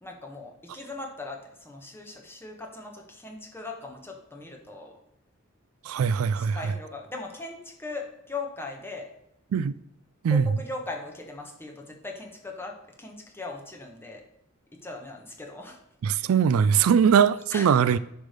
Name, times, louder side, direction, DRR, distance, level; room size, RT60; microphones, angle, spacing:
voice 1, 0.0-5.0 6.3-9.1 10.2-14.2 14.7-15.8 17.5-17.9, left 3 dB, 10° left, 1.2 m, -39 dB
voice 2, 5.9-6.6 9.5-9.7 10.2-10.4 16.0-18.0, right 7 dB, 80° right, 0.3 m, -21 dB
9.8 x 3.4 x 6.5 m
head